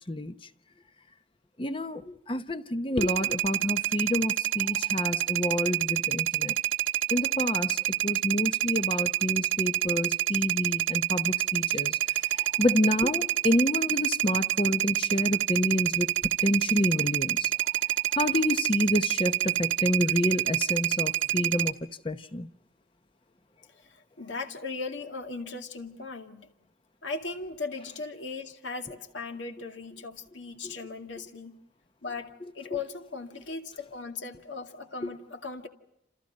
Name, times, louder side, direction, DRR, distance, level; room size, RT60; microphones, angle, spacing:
voice 1, 1.6-6.5 7.1-16.1 16.4-17.5 18.1-21.8 22.0-22.5 30.6-30.8 32.7-32.8 35.0-35.1, left 1 dB, 25° left, 0.9 m, -28 dB
sound 1, 3.0-21.7, right 15 dB, 90° right, 1.5 m, -27 dB
voice 2, 23.9-26.5 27.0-31.5 32.0-35.7, left 4 dB, 75° left, 2.2 m, -38 dB
28.5 x 28.5 x 5.3 m
head